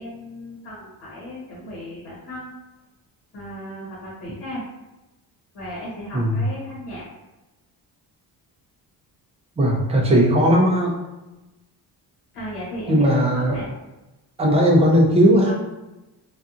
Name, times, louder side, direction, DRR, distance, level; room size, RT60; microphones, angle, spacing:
voice 1, 0.0-2.5 3.3-4.6 5.5-7.0 12.3-13.7, equal, 80° left, -6 dB, 1.0 m, -35 dB
voice 2, 9.6-11.0 12.9-13.6 14.4-15.6, equal, 15° right, -2 dB, 0.4 m, -17 dB
2.7 x 2.4 x 2.4 m, 1.0 s
cardioid pair, 170°, 40 cm